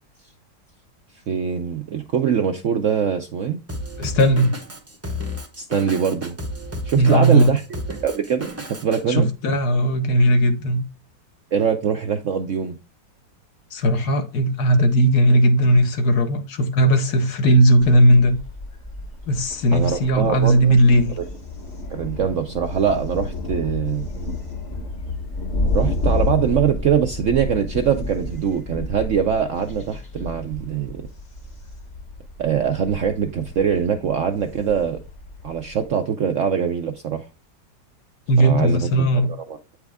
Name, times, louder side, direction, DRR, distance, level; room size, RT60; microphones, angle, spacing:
voice 1, 1.3-3.6 5.6-6.3 6.8-7.6 8.0-9.3 11.5-12.7 19.7-20.7 21.2-21.3 21.9-24.1 25.7-31.0 32.4-35.0 35.4-37.3 38.4-39.2 39.5-39.6, right 8 dB, 65° right, 0.8 m, -23 dB
Drum kit, 3.7-9.0, left 1 dB, 15° right, 0.6 m, -33 dB
voice 2, 4.0-4.5 6.9-7.5 9.1-10.8 13.7-18.4 19.3-21.1 38.3-39.3, right 1 dB, 65° left, 1.5 m, -17 dB
Thunder, 17.8-35.9, left 2 dB, 30° left, 1.0 m, -30 dB
8.9 x 4.8 x 3.5 m
omnidirectional pair, 1.9 m